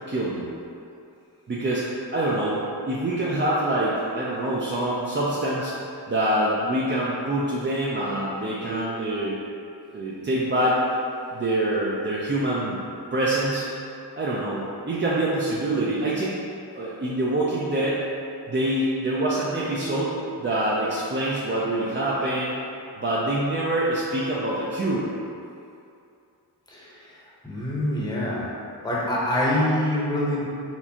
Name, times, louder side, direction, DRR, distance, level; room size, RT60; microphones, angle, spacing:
voice 1, 0.1-0.5 1.5-1.8 2.1-2.6 2.9-5.7 6.1-9.4 9.9-10.8 11.3-12.8 13.1-13.7 14.2-16.4 16.7-18.0 18.5-22.5 23.0-25.1, right 1 dB, 30° right, -7 dB, 0.5 m, -25 dB
voice 2, 26.7-27.2 27.4-28.5 28.8-30.4, left 1 dB, 10° left, -6 dB, 0.8 m, -25 dB
4.3 x 2.3 x 2.8 m, 2.6 s
cardioid pair, 50°, 43 cm